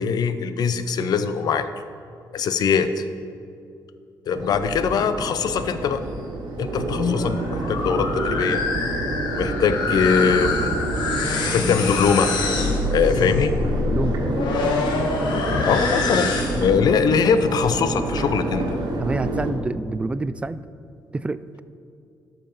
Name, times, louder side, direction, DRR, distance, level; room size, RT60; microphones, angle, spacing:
voice 1, 0.0-1.7 2.3-3.0 4.3-6.0 6.6-8.6 9.4-10.7 11.5-12.3 12.9-13.5 15.3-18.8, left 6 dB, 65° left, 11 dB, 0.6 m, -22 dB
Crowd, 4.3-19.5, right 2 dB, 80° right, 1.6 m, -28 dB
sound 1, 6.8-16.8, left 4 dB, 85° left, 1.1 m, -26 dB
voice 2, 13.9-14.2 19.0-20.6 21.1-21.6, right 3 dB, 15° right, 15 dB, 0.3 m, -27 dB
12.0 x 5.6 x 5.6 m, 2.5 s
cardioid pair, 120°, 7 cm